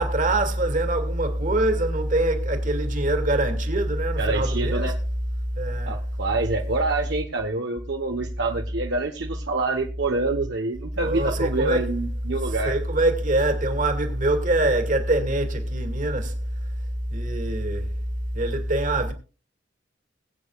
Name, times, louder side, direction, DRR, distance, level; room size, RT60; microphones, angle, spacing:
voice 1, 0.0-4.9 5.6-6.0 11.0-11.9 12.5-16.4 17.1-17.9 18.3-19.1, right 1 dB, 45° right, 2.2 m, -23 dB
voice 2, 4.2-4.9 5.9-12.7, right 3 dB, 65° right, 1.1 m, -26 dB
21.5 x 8.6 x 2.4 m
head